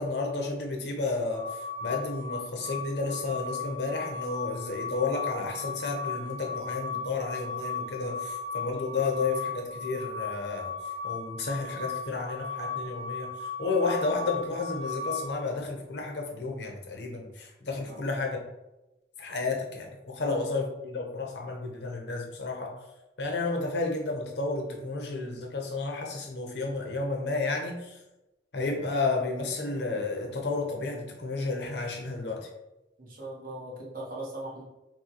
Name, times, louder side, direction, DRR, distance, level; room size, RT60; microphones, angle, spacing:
voice 1, 0.0-10.7 11.0-18.4 19.2-22.8 23.2-28.0 28.5-32.5, left 3 dB, 65° left, 1 dB, 0.8 m, -32 dB
sound 1, 1.3-15.3, left 4 dB, 75° right, 1.4 m, -36 dB
voice 2, 33.0-34.6, right 1 dB, 50° right, -4 dB, 1.1 m, -39 dB
6.0 x 2.2 x 2.9 m, 0.95 s
head